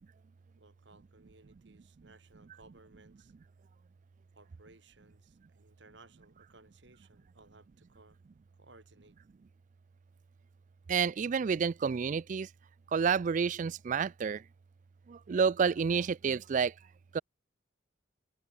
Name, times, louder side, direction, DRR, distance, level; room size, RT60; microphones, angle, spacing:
voice 1, 0.6-3.3 4.3-8.2 8.5-9.2, right 2 dB, 65° right, 7.8 m, -60 dB
voice 2, 10.9-12.5 12.9-14.4 15.1-16.7 17.1-17.2, right 6 dB, 40° right, 0.3 m, -29 dB
head